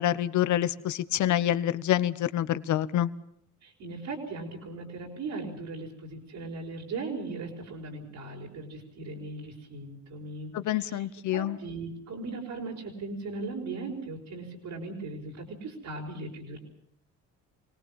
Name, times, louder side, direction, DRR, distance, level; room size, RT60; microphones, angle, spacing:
voice 1, 0.0-3.1 10.5-11.6, left 12 dB, 70° left, 15 dB, 1.0 m, -27 dB
voice 2, 3.6-11.1 11.3-16.6, right 3 dB, 80° right, -3 dB, 5.1 m, -38 dB
25.5 x 18.5 x 7.1 m, 0.71 s
cardioid pair, 90°, 30 cm